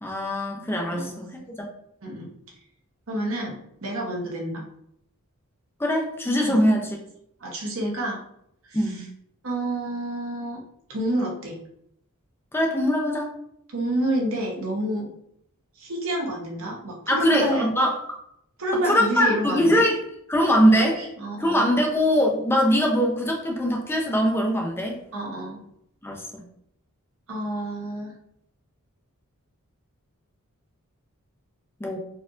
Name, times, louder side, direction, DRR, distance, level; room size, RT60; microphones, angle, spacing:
voice 1, 0.0-1.3 1.6-1.7 5.8-7.0 8.7-9.0 12.5-13.3 17.1-18.0 18.8-20.0 20.3-21.0 21.4-25.0 26.0-26.4 31.8-32.0, equal, 10° left, 0 dB, 0.5 m, -22 dB
voice 2, 3.1-4.6 6.5-6.6 7.4-8.2 8.6-9.0 9.4-10.6 10.9-11.6 13.7-15.1 15.8-17.7 18.6-19.9 20.6-21.7 25.1-25.6 27.3-28.1, right 1 dB, 65° right, -1 dB, 1.0 m, -29 dB
4.3 x 2.6 x 2.4 m, 0.73 s
head